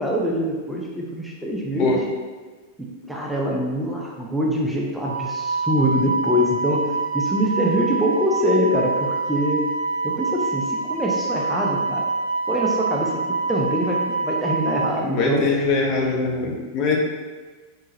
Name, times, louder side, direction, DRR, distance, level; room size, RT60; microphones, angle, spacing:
voice 1, 0.0-2.0 3.1-9.7 10.0-12.1 12.5-13.2 13.5-15.5, equal, 5° right, -3 dB, 0.6 m, -24 dB
Wind instrument woodwind instrument, 5.0-14.9, right 3 dB, 75° left, 0.7 m, -26 dB
voice 2, 15.0-17.0, left 4 dB, 40° left, 0 dB, 0.7 m, -22 dB
4.0 x 3.7 x 2.7 m, 1.3 s
figure-of-eight pair, 90°, 0 cm